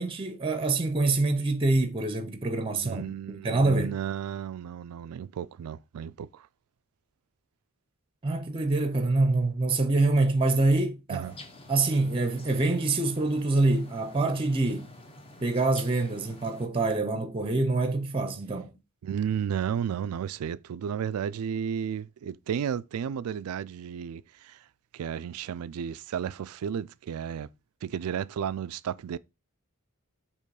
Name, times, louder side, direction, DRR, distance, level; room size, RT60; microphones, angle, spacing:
voice 1, 0.0-3.0 3.3-4.0 8.2-11.3 11.7-14.9 15.4-18.7, right 2 dB, 25° right, 0.6 m, -25 dB
voice 2, 2.8-6.5 11.1-11.4 19.0-24.6 24.9-27.5 27.8-29.2, right 8 dB, 80° right, 0.3 m, -33 dB
sound 1, 11.2-16.7, left 1 dB, 25° left, 0.9 m, -48 dB
6.7 x 3.0 x 4.7 m
head